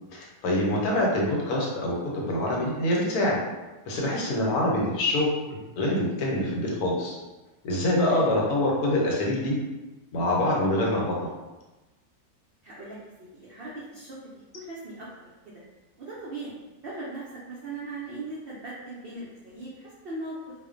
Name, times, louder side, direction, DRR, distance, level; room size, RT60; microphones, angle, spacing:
voice 1, 0.1-3.4 3.9-7.2 7.6-9.6 10.1-11.1, left 1 dB, 80° left, -2 dB, 1.1 m, -25 dB
voice 2, 12.6-15.3 16.0-20.5, right 2 dB, 80° right, -7 dB, 0.5 m, -39 dB
2.4 x 2.1 x 2.4 m, 1.1 s
omnidirectional pair, 1.6 m